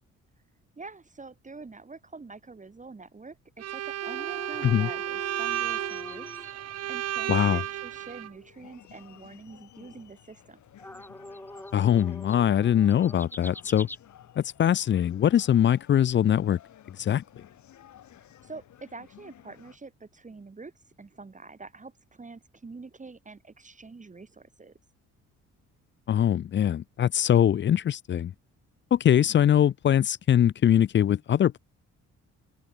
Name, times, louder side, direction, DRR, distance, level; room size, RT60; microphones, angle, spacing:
voice 1, 0.8-6.3 6.9-10.6 18.4-20.7 21.0-24.7, right 4 dB, 25° right, 3.0 m, -45 dB
Bowed string instrument, 3.6-8.3, right 13 dB, 55° right, 0.6 m, -33 dB
sound 1, 4.0-6.9 7.2-7.3 7.6-7.7 10.8-14.0, left 1 dB, 5° left, 1.7 m, -43 dB
sound 2, 4.5-19.8, left 11 dB, 70° left, 4.5 m, -55 dB
voice 2, 7.3-7.6 11.7-13.9 14.4-16.6 17.0-17.2 26.1-28.3 28.9-31.6, left 10 dB, 40° left, 0.4 m, -22 dB
cardioid pair, 90°, 30 cm